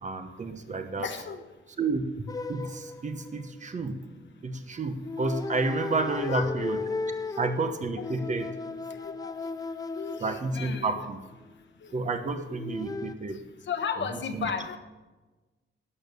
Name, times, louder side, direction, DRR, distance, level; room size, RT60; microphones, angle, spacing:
voice 1, 0.0-1.1 1.8-2.1 2.5-4.1 4.4-6.8 7.4-8.5 10.2-11.2 11.9-13.4 14.0-14.1 14.3-14.5, right 3 dB, 35° right, 8 dB, 1.0 m, -30 dB
voice 2, 1.0-1.4 6.1-6.5 7.3-7.4 8.0-8.1 8.9-9.3 9.9-11.1 11.8-11.9 13.7-14.8, left 6 dB, 60° left, 8 dB, 1.2 m, -34 dB
sound 1, 2.3-3.9 5.0-11.0 12.5-13.1, left 3 dB, 20° left, 0.4 m, -36 dB
12.5 x 8.8 x 6.8 m, 1.2 s
wide cardioid pair, 175°, 21 cm